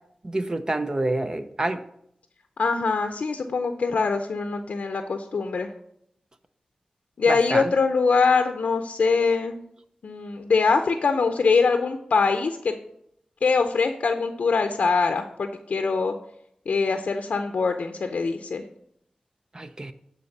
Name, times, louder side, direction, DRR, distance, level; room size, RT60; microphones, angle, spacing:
voice 1, 0.2-1.8 7.3-7.7 19.5-19.9, right 2 dB, 30° right, 9 dB, 0.6 m, -27 dB
voice 2, 2.6-5.7 7.2-9.6 10.0-12.7 13.4-16.1 16.7-18.6, left 4 dB, 80° left, 6 dB, 0.6 m, -23 dB
9.6 x 4.1 x 6.5 m, 0.73 s
wide cardioid pair, 75°, 2 cm